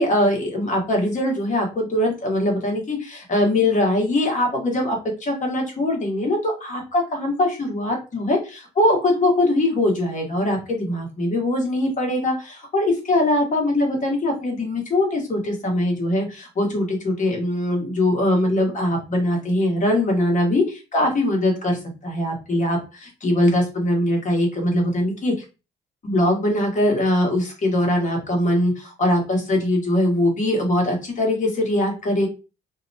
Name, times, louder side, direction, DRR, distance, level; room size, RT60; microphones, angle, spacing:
voice 1, 0.0-25.3 26.0-32.3, left 1 dB, 40° left, 1 dB, 1.2 m, -22 dB
2.7 x 2.1 x 2.6 m, 0.31 s
cardioid pair, 90°, 20 cm